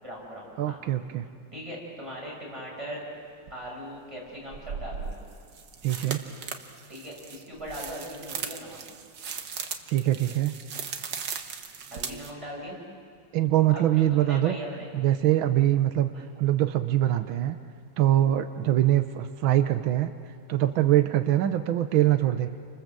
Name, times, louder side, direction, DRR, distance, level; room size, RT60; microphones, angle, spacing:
voice 1, 0.0-0.8 1.5-3.0 3.5-5.1 6.9-8.8 11.9-12.8 13.7-14.9 16.1-16.3, equal, 15° right, -4 dB, 7.7 m, -39 dB
voice 2, 0.6-1.3 5.8-6.2 9.9-10.6 13.3-14.6 14.9-17.6 18.0-20.1 20.5-22.5, right 13 dB, 85° right, 9 dB, 1.7 m, -23 dB
sound 1, 3.5-3.6 4.5-12.3, right 6 dB, 65° right, 1.9 m, -37 dB
30.0 x 25.5 x 7.6 m, 2.3 s
omnidirectional pair, 2.1 m